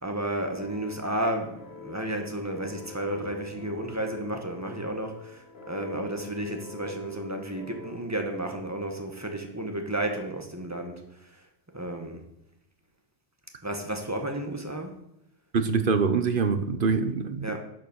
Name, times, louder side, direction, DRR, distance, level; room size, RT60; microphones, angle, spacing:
voice 1, 0.0-11.4 11.7-12.2 13.6-15.0 17.4-17.6, right 1 dB, 15° right, 3 dB, 1.7 m, -32 dB
sound 1, 0.6-8.0, left 5 dB, 55° left, 1.6 m, -46 dB
voice 2, 15.5-17.6, right 5 dB, 50° right, 10 dB, 1.0 m, -25 dB
12.0 x 6.8 x 6.4 m, 0.79 s
omnidirectional pair, 1.3 m